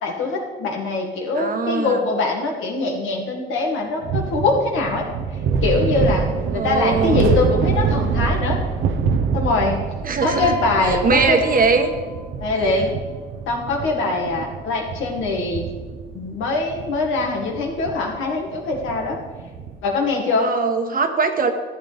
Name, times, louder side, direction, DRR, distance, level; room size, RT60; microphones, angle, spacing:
voice 1, 0.0-5.0 5.6-8.6 9.3-9.8 10.2-11.4 12.4-12.9 13.5-15.7 16.1-19.2 19.8-20.5, left 3 dB, 85° left, 1 dB, 2.0 m, -23 dB
voice 2, 1.4-2.0 6.5-7.2 10.0-10.6 10.8-11.9 12.6-12.7 20.4-21.5, right 4 dB, 45° right, 6 dB, 1.2 m, -21 dB
sound 1, 4.0-19.9, right 5 dB, 85° right, 0.9 m, -26 dB
Piano, 10.2-12.6 13.6-13.9, left 3 dB, 40° left, 3.0 m, -34 dB
13.0 x 8.7 x 3.5 m, 1.4 s
cardioid pair, 90°, 20 cm